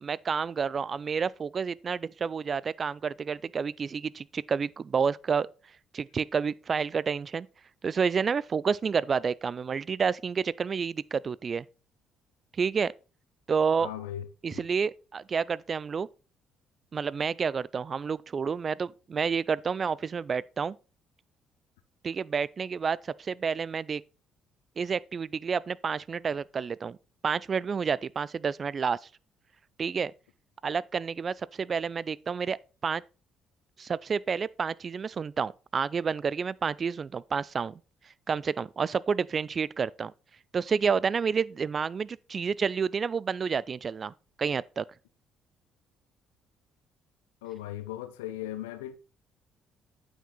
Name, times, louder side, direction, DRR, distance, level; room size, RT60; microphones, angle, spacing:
voice 1, 0.0-5.5 5.9-7.5 7.8-11.6 12.6-12.9 13.5-13.9 14.4-16.1 16.9-20.8 22.0-24.0 24.8-27.0 27.2-29.0 29.8-30.1 30.6-32.6 32.8-33.0 33.8-37.8 38.3-40.1 40.5-44.1 44.4-44.8, right 6 dB, 40° right, 0.3 m, -29 dB
voice 2, 13.8-14.6 47.4-49.0, left 12 dB, 80° left, 0.5 m, -38 dB
8.8 x 5.1 x 3.8 m
hypercardioid pair, 50°, 0 cm